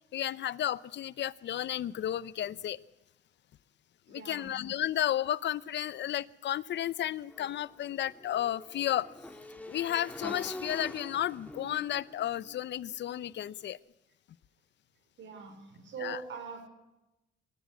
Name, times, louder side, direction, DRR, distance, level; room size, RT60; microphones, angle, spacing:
voice 1, 0.1-2.8 4.1-9.1 9.7-13.8 16.0-16.2, left 11 dB, 65° left, 19 dB, 0.7 m, -33 dB
voice 2, 4.1-4.5 15.2-16.7, right 5 dB, 70° right, 7 dB, 5.2 m, -42 dB
Motorcycle / Engine, 7.3-13.4, left 1 dB, 5° left, 3.0 m, -46 dB
22.5 x 15.0 x 9.6 m, 0.98 s
cardioid pair, 90°, 20 cm